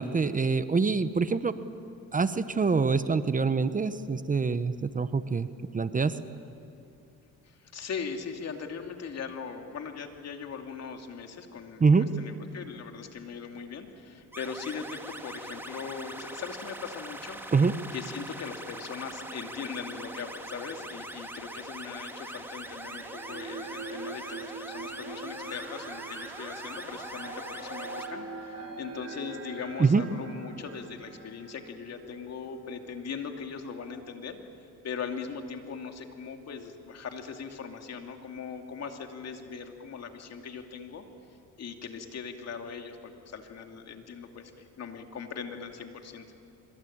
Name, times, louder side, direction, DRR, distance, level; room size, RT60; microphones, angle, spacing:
voice 1, 0.0-1.6 2.1-5.5 5.7-6.2 11.8-12.2 17.5-17.8 29.8-30.0, right 4 dB, 25° right, 12 dB, 1.0 m, -25 dB
voice 2, 7.4-17.4 17.9-34.4 34.8-41.0 41.6-43.0 43.3-46.3, left 6 dB, 60° left, 4 dB, 2.6 m, -40 dB
sound 1, 14.3-28.1, right 1 dB, 5° right, 2.4 m, -42 dB
sound 2, 22.7-32.2, right 3 dB, 50° right, 5.5 m, -43 dB
25.5 x 23.5 x 8.8 m, 2.6 s
cardioid pair, 90°, 30 cm